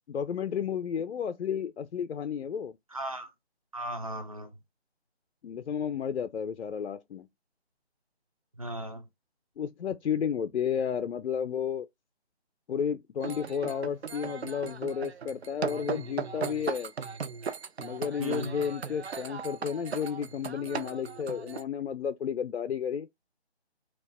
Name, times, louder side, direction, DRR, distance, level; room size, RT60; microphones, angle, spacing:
voice 1, 0.1-2.7 5.4-7.3 9.6-11.9 12.7-16.9 17.8-23.1, left 7 dB, 80° left, 0.5 m, -32 dB
voice 2, 2.9-3.3 3.7-4.5 8.6-9.0 18.2-18.6, right 1 dB, 30° right, 0.7 m, -36 dB
sound 1, 13.2-21.6, right 6 dB, 70° right, 0.7 m, -37 dB
4.3 x 2.4 x 4.1 m
figure-of-eight pair, 170°, 33 cm